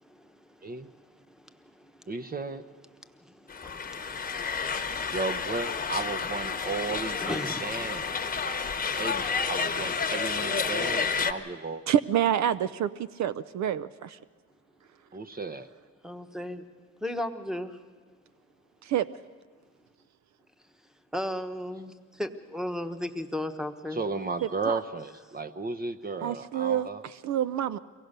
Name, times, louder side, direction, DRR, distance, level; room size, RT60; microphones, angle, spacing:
voice 1, 0.0-2.1 2.9-5.2 7.2-7.7 16.0-16.6 17.0-17.8 21.1-24.0, left 1 dB, ahead, 9 dB, 1.1 m, -37 dB
voice 2, 2.1-2.6 5.1-8.1 9.0-11.8 15.1-15.7 23.9-27.0, right 3 dB, 30° right, 9 dB, 0.8 m, -34 dB
sound 1, 3.5-11.3, left 5 dB, 30° left, 1.0 m, -30 dB
voice 3, 10.9-11.3 11.9-14.2 18.8-19.1 24.4-24.8 26.2-27.8, right 10 dB, 65° right, 14 dB, 0.5 m, -28 dB
23.5 x 17.5 x 6.6 m, 1.5 s
cardioid pair, 90°, 30 cm